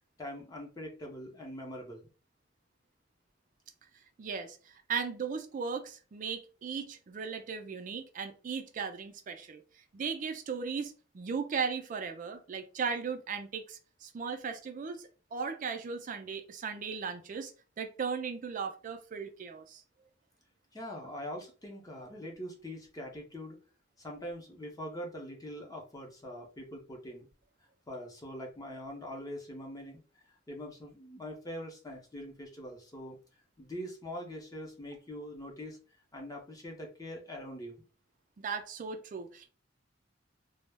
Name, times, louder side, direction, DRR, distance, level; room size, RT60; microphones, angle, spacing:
voice 1, 0.2-2.1 20.7-23.6 24.0-27.3 27.9-33.2 33.6-35.8 36.1-37.8, equal, 20° left, 0 dB, 0.6 m, -43 dB
voice 2, 4.2-9.6 9.9-17.5 17.8-19.8 38.4-39.5, right 5 dB, 45° right, 6 dB, 0.4 m, -37 dB
2.2 x 2.0 x 3.3 m, 0.35 s
head